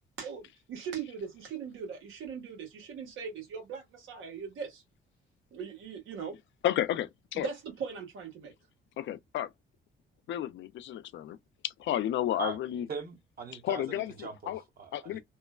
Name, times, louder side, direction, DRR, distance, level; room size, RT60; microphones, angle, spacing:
voice 1, 0.2-4.8 5.5-6.4 7.3-8.5, right 6 dB, 85° right, 1.5 m, -40 dB
voice 2, 6.6-7.5 9.0-9.5 10.3-11.4 11.6-12.9 13.6-14.6 14.9-15.2, left 12 dB, 70° left, 0.5 m, -32 dB
voice 3, 12.9-15.2, right 4 dB, 50° right, 1.0 m, -41 dB
3.0 x 2.1 x 2.3 m
cardioid pair, 90°, 20 cm